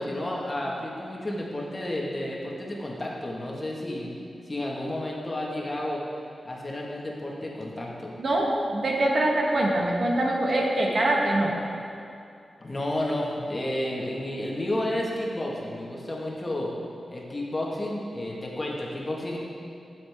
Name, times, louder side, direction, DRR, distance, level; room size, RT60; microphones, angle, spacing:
voice 1, 0.0-4.1 4.5-6.0 6.5-8.1 12.6-16.7 17.1-19.4, left 1 dB, 30° left, -3 dB, 1.8 m, -31 dB
voice 2, 8.2-11.5, right 1 dB, 60° right, -2 dB, 1.5 m, -24 dB
12.5 x 7.8 x 3.7 m, 2.5 s
cardioid pair, 75°, 0 cm